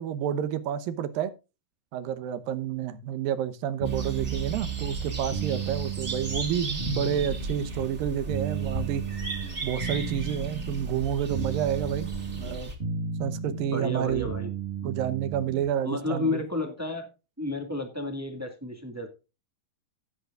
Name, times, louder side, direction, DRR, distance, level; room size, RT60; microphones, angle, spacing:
voice 1, 0.0-1.3 1.9-9.0 9.6-12.7 13.2-14.3 14.8-16.4, right 10 dB, 80° right, 2.8 m, -29 dB
sound 1, 3.8-15.7, right 7 dB, 40° right, 1.0 m, -34 dB
sound 2, 3.9-12.8, right 1 dB, 25° right, 2.4 m, -36 dB
voice 2, 13.5-14.5 14.8-14.9 15.8-17.1 17.4-19.1, left 2 dB, 10° right, 0.9 m, -32 dB
17.0 x 8.1 x 2.4 m
omnidirectional pair, 4.0 m